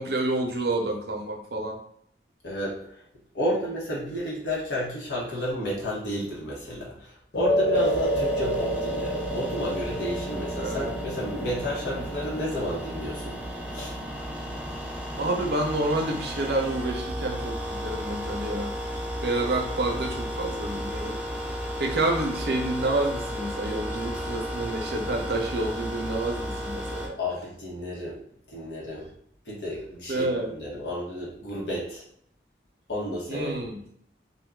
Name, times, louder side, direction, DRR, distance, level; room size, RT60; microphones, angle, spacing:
voice 1, 0.0-1.8 10.6-10.9 11.9-12.1 15.2-18.7 19.2-21.2 21.8-27.2 30.1-30.6 33.3-33.8, right 2 dB, 65° right, 3 dB, 0.6 m, -29 dB
voice 2, 2.4-2.8 3.3-13.4 13.7-13.9 27.2-28.2 28.5-29.1 29.5-32.0 32.9-33.6, left 1 dB, 85° left, -5 dB, 1.0 m, -31 dB
sound 1, 7.3-15.8, right 1 dB, 65° left, 1.0 m, -30 dB
sound 2, 7.7-27.1, equal, 5° right, 0.4 m, -34 dB
2.6 x 2.2 x 3.5 m, 0.67 s
head